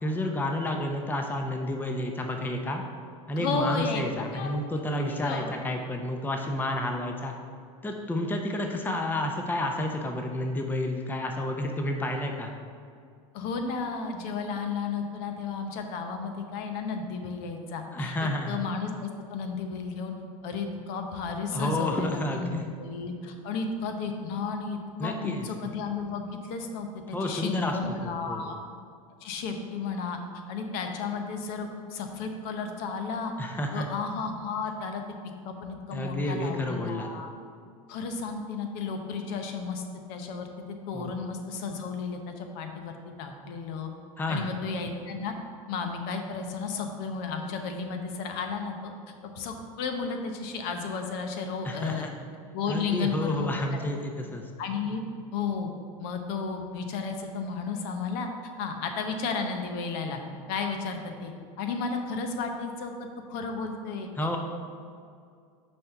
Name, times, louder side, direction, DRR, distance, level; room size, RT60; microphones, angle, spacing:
voice 1, 0.0-2.8 3.3-7.3 7.8-12.5 17.9-18.6 21.5-22.7 25.0-25.5 27.1-28.5 33.4-33.9 35.9-37.1 40.9-41.2 44.2-44.5 51.6-52.1 52.7-54.5 64.2-64.4, left 1 dB, 10° left, 3 dB, 0.7 m, -30 dB
voice 2, 3.3-4.6 5.0-5.6 13.3-20.1 20.4-28.6 29.2-30.2 30.5-33.3 33.7-35.0 35.4-37.3 37.9-39.8 40.1-43.9 44.3-45.3 45.7-48.9 49.2-52.1 52.5-53.5 54.6-55.0 55.3-55.7 56.0-58.3 58.6-60.2 60.5-61.3 61.6-62.9 63.3-64.1, left 5 dB, 60° left, 5 dB, 0.9 m, -33 dB
6.2 x 4.5 x 5.7 m, 2.3 s
hypercardioid pair, 100°, 18 cm